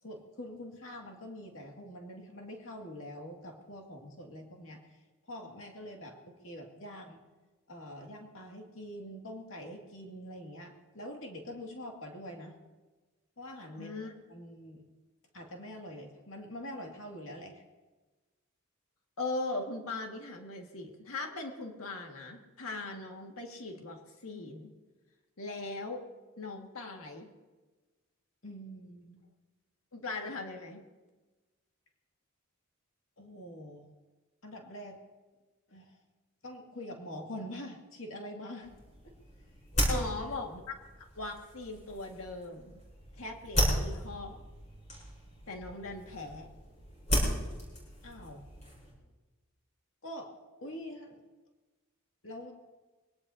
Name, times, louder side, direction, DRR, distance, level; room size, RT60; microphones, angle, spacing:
voice 1, 0.0-5.0 5.3-7.2 7.7-12.5 13.4-14.8 15.3-17.6 28.4-29.2 33.2-33.9 34.4-35.0 35.7-36.0 36.4-38.7 39.0-39.1 39.9-40.0 48.0-48.5 50.0-50.3 50.6-51.2 52.2-52.5, equal, 65° left, 1 dB, 2.3 m, -45 dB
voice 2, 13.8-14.1 19.2-24.7 25.4-26.0 26.4-27.3 29.9-30.9 39.9-40.6 41.0-42.8 43.2-44.4 45.5-46.5, left 3 dB, 85° left, 2 dB, 1.9 m, -39 dB
sound 1, 38.6-48.9, equal, 35° left, 6.8 m, -35 dB
23.5 x 18.0 x 2.8 m, 1.2 s
head